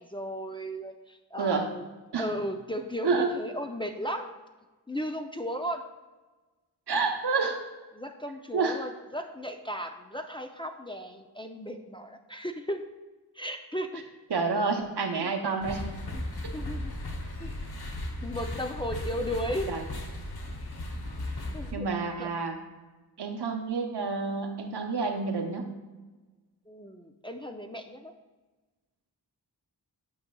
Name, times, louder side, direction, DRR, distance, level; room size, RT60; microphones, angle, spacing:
voice 1, 0.0-1.8 2.2-4.3 4.9-5.8 7.9-12.9 13.4-14.0 15.2-15.3 16.1-16.2 16.5-16.9 17.4-17.5 18.2-19.7 21.5-21.9 22.2-22.3 26.7-28.1, equal, 15° left, 4 dB, 0.4 m, -35 dB
voice 2, 6.9-7.6 8.5-8.8 14.3-15.9 19.7-19.8 21.7-22.6 23.2-25.7, right 4 dB, 75° right, 4 dB, 0.8 m, -29 dB
sound 1, 15.6-21.7, left 1 dB, 65° left, 1.0 m, -36 dB
8.5 x 5.3 x 2.3 m, 1.2 s
wide cardioid pair, 50°, 41 cm